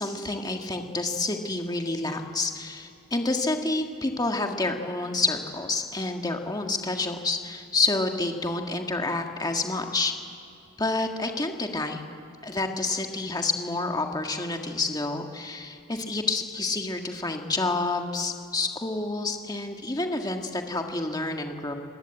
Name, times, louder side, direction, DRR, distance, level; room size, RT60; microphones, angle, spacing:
voice 1, 0.0-10.1 10.8-12.0 12.4-21.7, left 3 dB, 20° left, 3 dB, 1.7 m, -28 dB
28.0 x 20.0 x 9.0 m, 2.8 s
head